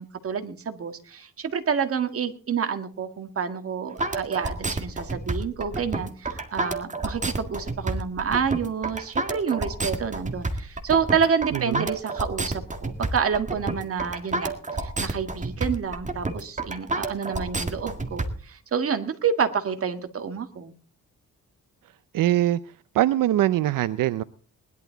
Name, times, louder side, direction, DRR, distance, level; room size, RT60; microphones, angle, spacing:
voice 1, 0.0-14.5 14.8-20.7, right 6 dB, 45° right, 8 dB, 1.8 m, -28 dB
sound 1, 4.0-18.3, right 2 dB, 20° right, 1.9 m, -29 dB
voice 2, 11.5-11.9 22.1-22.6 22.9-24.2, right 14 dB, 80° right, 14 dB, 0.6 m, -22 dB
20.0 x 11.5 x 3.9 m, 0.41 s
cardioid pair, 130°, 33 cm